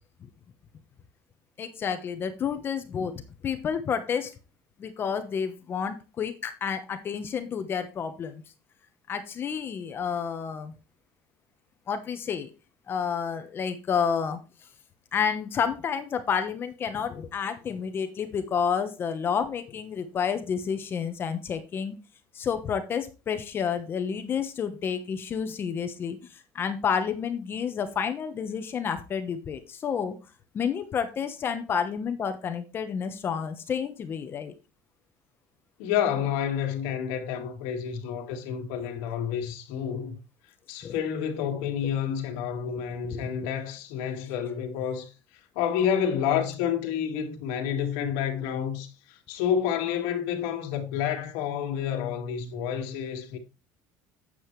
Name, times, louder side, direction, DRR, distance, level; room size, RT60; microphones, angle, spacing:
voice 1, 1.6-4.3 4.8-8.4 9.1-10.7 11.9-12.5 12.9-14.4 15.1-22.0 22.3-30.2 30.5-34.5 40.8-41.0 43.1-43.2, left 7 dB, 30° left, 1.0 m, -30 dB
voice 2, 35.8-40.2 40.7-45.1 45.6-53.4, left 8 dB, 85° left, 1.9 m, -29 dB
8.7 x 7.8 x 3.2 m
cardioid pair, 150°, 7 cm